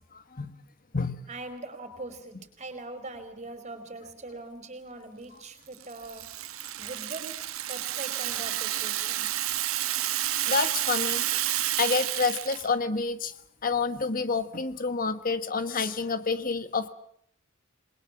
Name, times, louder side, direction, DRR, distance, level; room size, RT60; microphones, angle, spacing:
voice 1, 0.1-0.5 0.9-1.2 10.5-11.2 11.8-13.3 13.6-16.9, left 4 dB, 45° left, 11 dB, 1.4 m, -28 dB
voice 2, 1.1-6.2 6.8-7.3 7.7-9.3, right 2 dB, 35° right, 9 dB, 4.8 m, -41 dB
Rattle (instrument), 5.7-12.7, right 14 dB, 90° right, 1.3 m, -30 dB
28.5 x 21.5 x 7.3 m, 0.68 s
head